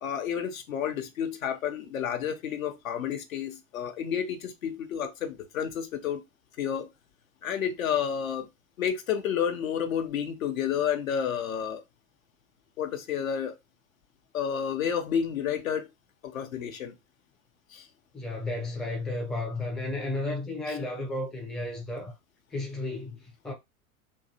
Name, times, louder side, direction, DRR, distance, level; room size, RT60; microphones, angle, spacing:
voice 1, 0.0-6.2 6.6-6.9 7.4-8.5 8.8-11.8 12.8-13.6 14.3-15.9 16.2-16.9 17.7-17.9 20.7-20.8, left 8 dB, 70° left, 0.7 m, -30 dB
voice 2, 18.1-22.1 22.5-23.5, left 2 dB, ahead, 0.4 m, -33 dB
2.7 x 2.3 x 2.6 m
figure-of-eight pair, 85°, 43 cm